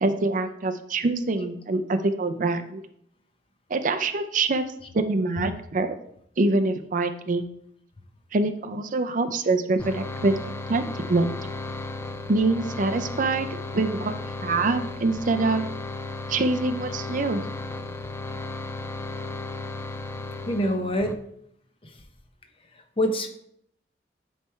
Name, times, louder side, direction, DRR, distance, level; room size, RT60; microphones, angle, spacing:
voice 1, 0.0-2.8 3.7-4.6 4.9-6.0 6.4-7.4 8.3-11.3 12.3-13.5 13.7-14.1 14.4-15.6 16.3-17.4, right 3 dB, 50° right, 9 dB, 0.5 m, -25 dB
sound 1, 9.8-21.1, left 3 dB, 15° left, 0.4 m, -35 dB
voice 2, 20.5-21.2 21.8-22.0 23.0-23.3, equal, 30° left, 5 dB, 0.8 m, -25 dB
9.6 x 3.3 x 4.5 m, 0.72 s
head